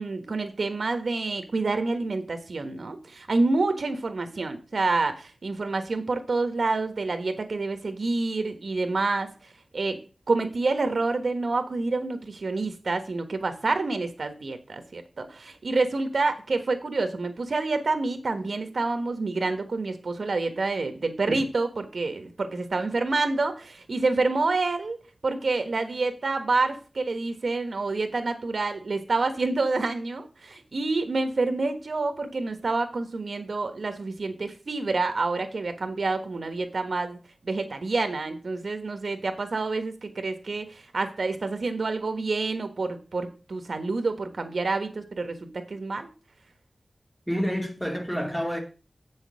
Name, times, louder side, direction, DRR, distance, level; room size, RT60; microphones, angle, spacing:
voice 1, 0.0-9.3 9.7-10.0 10.3-25.0 25.2-46.1, right 3 dB, 75° right, 1.3 m, -28 dB
voice 2, 47.3-48.6, equal, 5° left, 2.7 m, -28 dB
7.8 x 6.3 x 6.2 m
wide cardioid pair, 80°, 0 cm